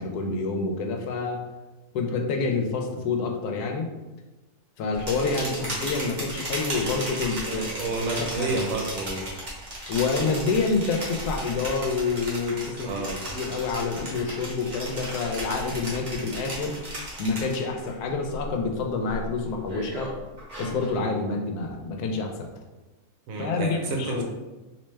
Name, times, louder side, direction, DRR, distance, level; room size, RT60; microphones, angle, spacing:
voice 1, 0.0-1.4 1.9-3.9 4.8-7.7 8.0-8.6 9.9-13.1 13.3-16.8 17.2-20.1 20.6-22.5 23.4-24.2, left 4 dB, 90° left, 3 dB, 1.1 m, -28 dB
sound 1, 4.9-17.9 18.2-18.7 19.1-21.0, right 1 dB, 35° right, 0.9 m, -35 dB
voice 2, 7.5-9.2 12.8-13.2 23.3-24.2, right 3 dB, 70° right, 1 dB, 1.0 m, -30 dB
3.3 x 2.8 x 3.1 m, 1.1 s
omnidirectional pair, 1.6 m